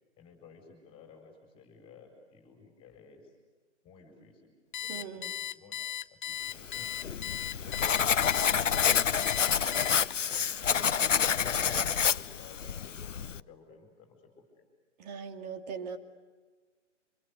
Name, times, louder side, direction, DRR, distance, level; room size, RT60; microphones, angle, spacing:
voice 1, 0.2-3.4 3.8-5.8 6.1-10.9 11.2-14.6, left 4 dB, 15° left, 3 dB, 4.5 m, -55 dB
Alarm, 4.7-10.4, left 10 dB, 40° left, 1.0 m, -37 dB
voice 2, 4.9-5.3 15.0-16.0, right 6 dB, 35° right, 7 dB, 2.6 m, -40 dB
Writing, 6.7-13.4, left 7 dB, 80° left, 0.9 m, -28 dB
27.0 x 26.0 x 8.1 m, 1.4 s
hypercardioid pair, 145°, 37 cm